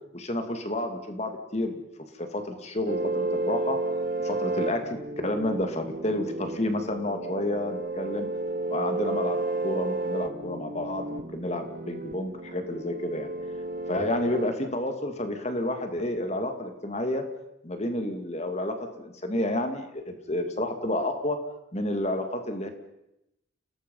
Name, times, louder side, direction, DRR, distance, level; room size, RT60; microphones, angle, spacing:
voice 1, 0.1-1.8 2.2-3.8 4.2-8.3 8.7-9.4 9.6-13.3 13.9-17.2 17.6-21.4 21.7-22.7, left 1 dB, 35° left, 6 dB, 2.4 m, -30 dB
sound 1, 2.9-14.5, right 2 dB, 45° right, 0.9 m, -32 dB
29.5 x 18.5 x 5.6 m, 0.86 s
head